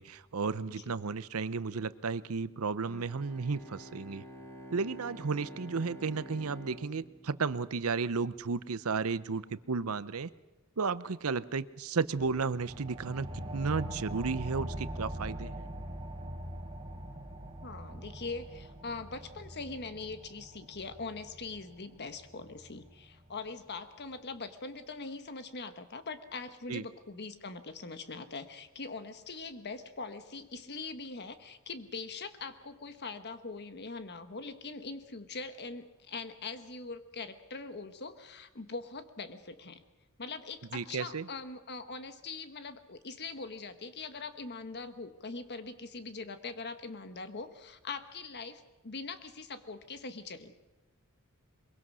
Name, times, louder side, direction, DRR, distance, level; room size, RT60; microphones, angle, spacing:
voice 1, 0.0-4.2 4.7-10.3 10.8-15.7 26.7-26.8 40.7-41.3, right 4 dB, 85° right, 16 dB, 0.7 m, -33 dB
Bowed string instrument, 2.8-8.4, equal, 10° left, 1.7 m, -49 dB
sound 1, 12.2-23.3, right 1 dB, 25° right, 2.7 m, -43 dB
voice 2, 17.6-39.8 40.2-50.6, left 4 dB, 50° left, 10 dB, 1.4 m, -42 dB
22.5 x 22.5 x 6.3 m, 1.1 s
head